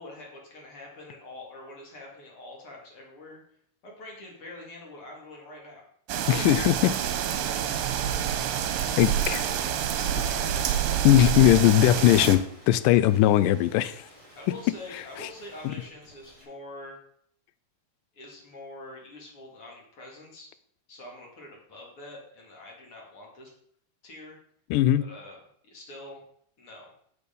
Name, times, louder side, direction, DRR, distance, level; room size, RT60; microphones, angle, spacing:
voice 1, 0.0-3.4 3.8-5.8 14.4-17.0 18.1-20.5 20.9-23.5 24.0-24.4 25.0-25.4 25.6-26.2 26.6-26.9, left 2 dB, 40° left, -1 dB, 2.8 m, -45 dB
sound 1, 6.1-12.4, right 9 dB, 75° right, 2.5 m, -27 dB
voice 2, 6.3-6.9 8.9-9.5 11.0-14.0 15.2-15.3 15.6-15.7 24.7-25.1, left 13 dB, 80° left, 14 dB, 2.0 m, -20 dB
sound 2, 6.8-16.4, equal, 10° left, 3.4 m, -54 dB
8.4 x 6.9 x 5.2 m, 0.65 s
omnidirectional pair, 4.3 m